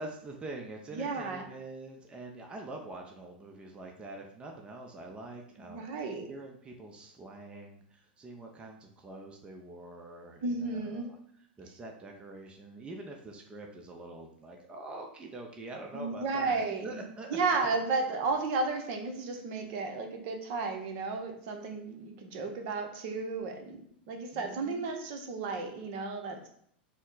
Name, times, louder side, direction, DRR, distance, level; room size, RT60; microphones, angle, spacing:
voice 1, 0.0-11.2 11.6-17.7 24.3-24.9, right 2 dB, 20° right, 2 dB, 0.5 m, -45 dB
voice 2, 0.9-1.5 5.6-6.3 10.4-11.1 15.9-17.0 17.3-23.8 24.1-26.5, right 3 dB, 50° right, 4 dB, 0.8 m, -33 dB
4.1 x 2.0 x 3.9 m, 0.66 s
hypercardioid pair, 105°, 6 cm